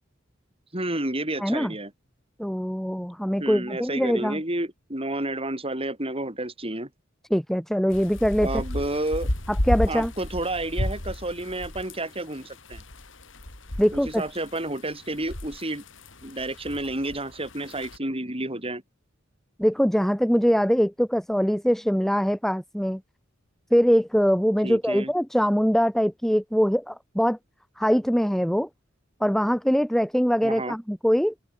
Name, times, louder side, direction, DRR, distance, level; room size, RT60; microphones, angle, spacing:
voice 1, 0.7-1.9 3.4-6.9 8.4-9.3 9.9-12.8 13.9-15.8 16.2-18.8 24.6-25.1 30.4-30.8, right 1 dB, 30° right, 7.2 m, -30 dB
voice 2, 1.4-1.7 2.4-4.4 7.3-8.5 9.7-10.1 13.8-14.2 19.6-23.0 23.7-27.4 27.8-28.7 29.2-31.3, equal, ahead, 1.3 m, -22 dB
sound 1, 7.9-18.0, left 1 dB, 75° left, 4.6 m, -32 dB
head